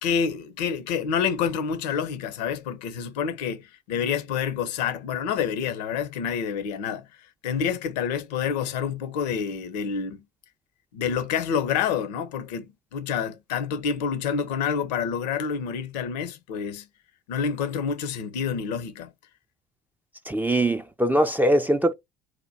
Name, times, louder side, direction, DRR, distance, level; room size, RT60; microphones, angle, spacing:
voice 1, 0.0-7.1 7.4-10.2 10.9-16.9 17.3-19.1, left 7 dB, 75° left, 0.7 m, -28 dB
voice 2, 20.3-21.9, right 1 dB, 10° right, 0.4 m, -22 dB
2.8 x 2.2 x 4.0 m
hypercardioid pair, 65°, 21 cm